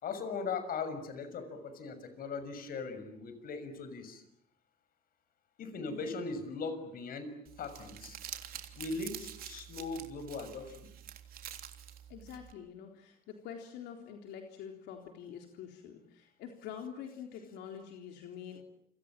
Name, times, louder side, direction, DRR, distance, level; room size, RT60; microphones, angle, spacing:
voice 1, 0.0-4.2 5.6-8.2 8.8-10.9, left 4 dB, 60° left, 10 dB, 6.5 m, -39 dB
voice 2, 5.8-6.1 12.1-18.6, left 8 dB, 85° left, 3 dB, 3.8 m, -46 dB
Crumpling crinkling, 7.5-12.5, right 10 dB, 60° right, 3.5 m, -47 dB
29.5 x 26.0 x 7.6 m, 0.74 s
cardioid pair, 110°, 17 cm